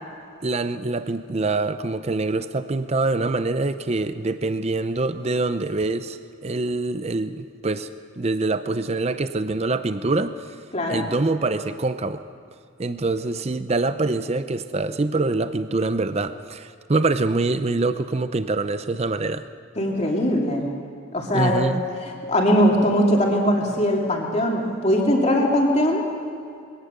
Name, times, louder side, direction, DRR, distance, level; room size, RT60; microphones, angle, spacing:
voice 1, 0.4-7.9 8.2-10.3 10.9-12.2 12.8-19.4 21.3-21.8, right 3 dB, 30° right, 11 dB, 0.6 m, -25 dB
voice 2, 10.7-11.0 19.8-20.7 21.1-21.7 22.3-26.0, equal, 30° left, -1 dB, 2.9 m, -20 dB
22.5 x 18.0 x 6.8 m, 2.4 s
head